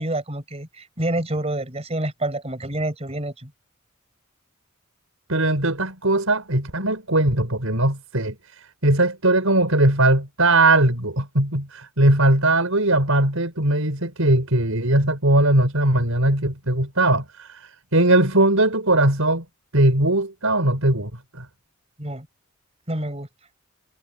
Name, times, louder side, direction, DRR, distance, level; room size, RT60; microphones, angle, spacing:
voice 1, 0.0-3.5 22.0-22.3 22.9-23.3, right 1 dB, 30° right, 5.9 m, -28 dB
voice 2, 5.3-19.5 19.7-21.5, right 1 dB, 75° right, 5.2 m, -20 dB
head